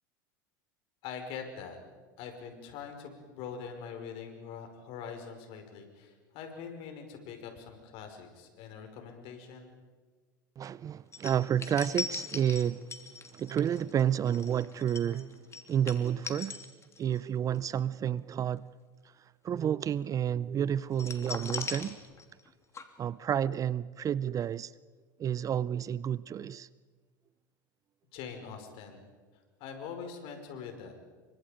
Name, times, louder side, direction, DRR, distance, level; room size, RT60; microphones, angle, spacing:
voice 1, 1.0-1.8 2.2-9.7 28.1-29.0 29.6-30.9, left 6 dB, 60° left, 5.4 m, -43 dB
voice 2, 10.6-12.9 13.3-15.4 15.7-16.7 17.0-18.7 19.4-22.0 23.0-24.7 25.2-26.7, right 9 dB, 30° right, 0.6 m, -30 dB
sound 1, 11.1-17.2 17.5-17.8 20.9-22.5 22.7-22.8, left 4 dB, 25° left, 2.9 m, -40 dB
29.0 x 25.0 x 5.2 m
hypercardioid pair, 95°, 11 cm